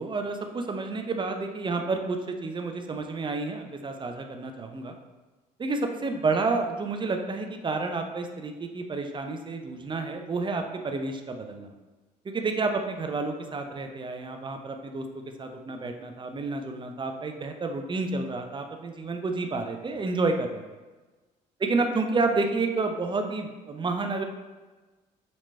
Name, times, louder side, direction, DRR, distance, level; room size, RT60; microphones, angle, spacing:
voice 1, 0.0-4.9 5.6-11.7 12.2-15.0 15.4-20.6 21.6-24.2, right 3 dB, 25° right, 5 dB, 0.6 m, -30 dB
5.8 x 4.1 x 2.2 m, 1.2 s
figure-of-eight pair, 50°, 21 cm